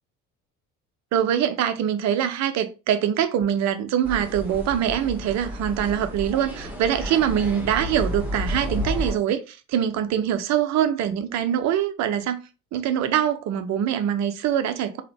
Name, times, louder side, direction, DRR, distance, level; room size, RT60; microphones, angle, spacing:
voice 1, 1.1-12.4 12.7-15.0, right 9 dB, 40° right, 0.7 m, -24 dB
sound 1, 4.0-9.1, equal, 5° right, 1.6 m, -31 dB
3.8 x 3.0 x 3.4 m
figure-of-eight pair, 55°, 42 cm